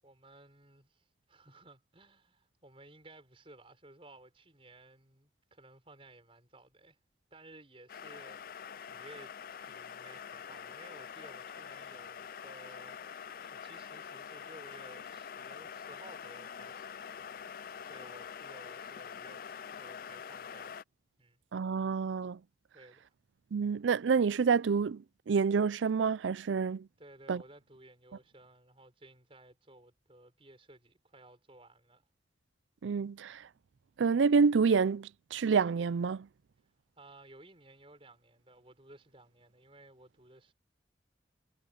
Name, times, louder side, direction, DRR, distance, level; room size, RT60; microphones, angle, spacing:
voice 1, 0.0-7.0 7.3-9.3 9.6-17.5 17.8-20.8 21.2-21.4 22.7-23.1 27.0-32.1 37.0-40.5, right 2 dB, 30° right, 5.8 m, -56 dB
sound 1, 7.9-20.8, left 7 dB, 50° left, 0.4 m, -45 dB
voice 2, 21.5-22.4 23.5-26.9 27.3-27.4 32.8-33.4 34.0-36.3, right 5 dB, 90° right, 0.4 m, -28 dB
head